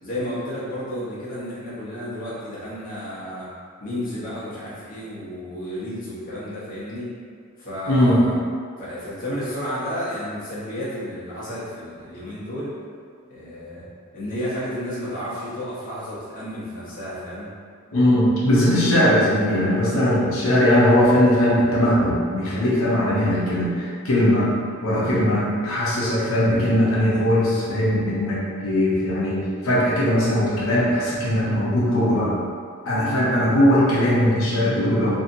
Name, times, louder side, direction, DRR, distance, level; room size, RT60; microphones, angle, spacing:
voice 1, 0.0-3.5 3.8-7.1 7.6-8.4 8.8-12.7 13.3-13.9 14.1-17.5 19.8-20.3, equal, 40° left, -10 dB, 0.9 m, -32 dB
voice 2, 7.9-8.2 17.9-24.5 24.8-32.3 32.9-35.2, left 1 dB, 85° left, -8 dB, 0.7 m, -19 dB
2.8 x 2.7 x 2.6 m, 2.1 s
head